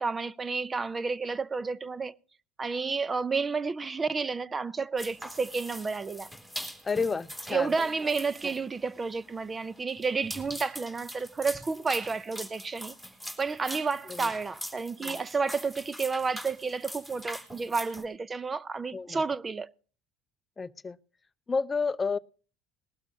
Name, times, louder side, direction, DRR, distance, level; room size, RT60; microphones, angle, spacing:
voice 1, 0.0-2.1 2.6-6.3 7.5-12.9 13.4-19.7, right 4 dB, 25° right, 0.5 m, -31 dB
sound 1, 5.0-18.0, equal, 10° right, 3.1 m, -42 dB
voice 2, 6.8-7.7 14.1-14.3 18.9-19.2 20.6-21.0 21.5-22.2, left 4 dB, 25° left, 0.5 m, -30 dB
20.0 x 12.5 x 2.7 m
supercardioid pair, 90°, 0 cm